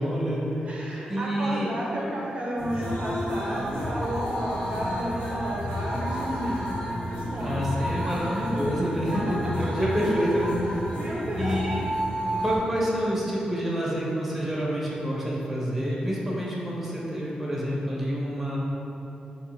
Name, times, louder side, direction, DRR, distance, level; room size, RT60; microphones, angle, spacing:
voice 1, 0.0-1.7 7.4-11.0 11.4-11.9 12.4-18.6, equal, 5° right, -6 dB, 0.6 m, -28 dB
voice 2, 0.6-7.6 9.1-9.5 10.9-11.6, equal, 50° right, -4 dB, 0.6 m, -32 dB
sound 1, 2.6-12.6, equal, 90° left, 1.0 m, -30 dB
2.8 x 2.4 x 3.7 m, 2.9 s
wide cardioid pair, 110°, 3 cm